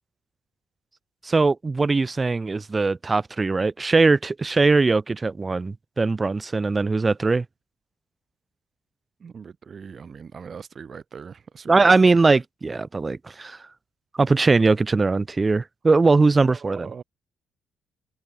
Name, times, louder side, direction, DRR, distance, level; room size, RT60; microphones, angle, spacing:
voice 1, 1.2-7.5 11.7-13.6 14.1-16.8, right 3 dB, 25° right, 1.9 m, -20 dB
voice 2, 9.2-12.4 16.4-17.0, right 6 dB, 45° right, 4.3 m, -40 dB
cardioid pair, 90°, 0 cm